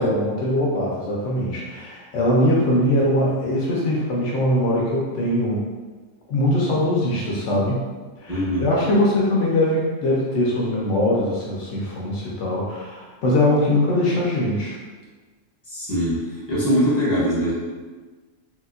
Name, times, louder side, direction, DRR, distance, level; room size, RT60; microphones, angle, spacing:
voice 1, 0.0-5.6 6.3-7.8 8.2-14.8, left 1 dB, 70° left, -4 dB, 0.9 m, -21 dB
voice 2, 8.3-8.7 15.7-17.5, equal, 20° right, -10 dB, 0.8 m, -22 dB
3.0 x 2.8 x 2.4 m, 1.3 s
omnidirectional pair, 1.4 m